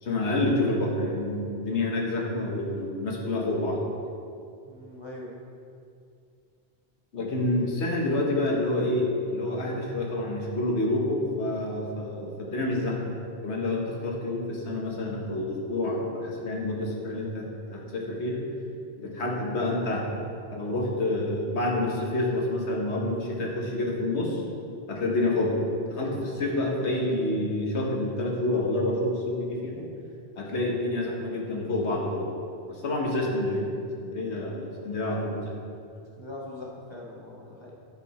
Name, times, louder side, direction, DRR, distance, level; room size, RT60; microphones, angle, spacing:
voice 1, 0.0-3.8 7.1-13.1 13.4-18.4 19.0-20.0 20.5-24.4 24.9-25.6 25.9-29.9 30.3-32.3 32.7-33.7 34.0-35.5, left 1 dB, 80° left, -1 dB, 1.4 m, -28 dB
voice 2, 4.7-5.4 36.2-37.7, left 2 dB, 25° left, -4 dB, 1.1 m, -41 dB
9.4 x 4.7 x 4.2 m, 2.5 s
omnidirectional pair, 1.1 m